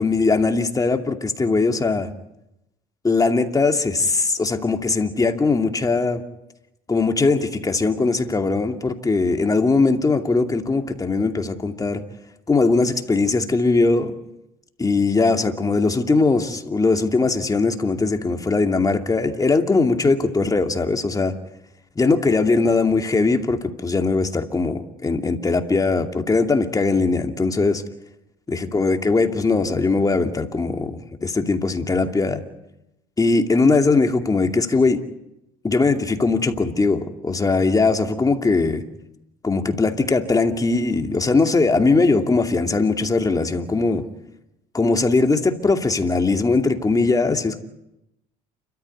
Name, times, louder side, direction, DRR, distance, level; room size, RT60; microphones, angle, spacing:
voice 1, 0.0-2.1 3.0-6.2 6.9-12.0 12.5-14.1 14.8-21.3 22.0-27.8 28.7-32.4 33.2-35.0 35.6-38.8 39.4-44.0 44.7-47.6, left 3 dB, 20° left, 5 dB, 2.5 m, -20 dB
29.5 x 13.5 x 9.7 m, 0.89 s
supercardioid pair, 85°, 16 cm